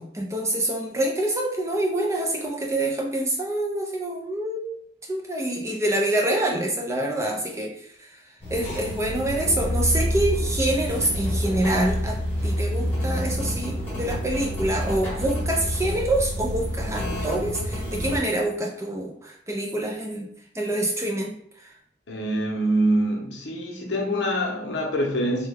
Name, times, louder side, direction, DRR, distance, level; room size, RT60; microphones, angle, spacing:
voice 1, 0.0-4.8 5.1-8.2 8.5-20.3 20.5-21.3 21.6-21.7, right 1 dB, 15° right, 0 dB, 0.4 m, -26 dB
sound 1, 8.4-18.2, equal, 10° left, 1.1 m, -28 dB
voice 2, 22.1-25.5, right 1 dB, 70° left, 0 dB, 0.7 m, -25 dB
3.3 x 2.2 x 3.2 m, 0.66 s
head